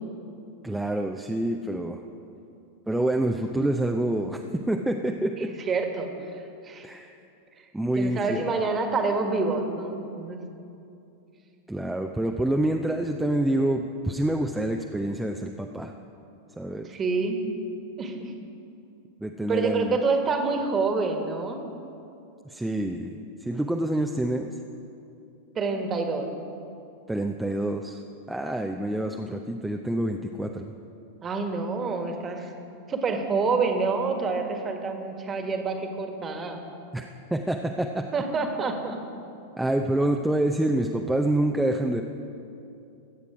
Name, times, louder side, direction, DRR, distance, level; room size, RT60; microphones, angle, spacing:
voice 1, 0.6-2.0 2.9-4.4 4.7-5.5 6.8-7.1 7.7-8.5 11.7-15.9 16.6-16.9 19.2-20.0 22.4-24.5 27.1-28.0 28.3-30.7 36.9-38.1 39.6-42.0, right 1 dB, 5° right, 3 dB, 0.6 m, -27 dB
voice 2, 5.4-6.1 6.6-6.9 7.9-10.4 16.8-17.4 18.0-18.3 19.5-21.6 25.5-26.3 31.2-32.5 32.9-36.6 38.1-39.0, right 4 dB, 25° right, 4 dB, 1.6 m, -27 dB
22.0 x 8.3 x 4.9 m, 2.7 s
figure-of-eight pair, 90°, 0 cm